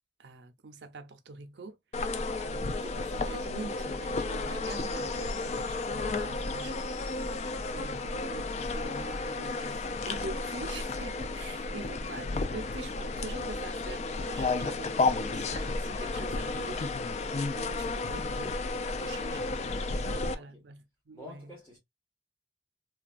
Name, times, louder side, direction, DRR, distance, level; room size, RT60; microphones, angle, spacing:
voice 1, 0.2-1.8 2.4-6.9 7.5-18.6 19.0-19.5 20.0-21.5, right 3 dB, 70° right, 0.5 m, -45 dB
sound 1, 1.9-20.3, left 3 dB, 35° left, 0.3 m, -32 dB
voice 2, 19.9-20.6 21.1-21.8, left 2 dB, 15° left, 1.2 m, -52 dB
3.0 x 2.2 x 2.4 m
head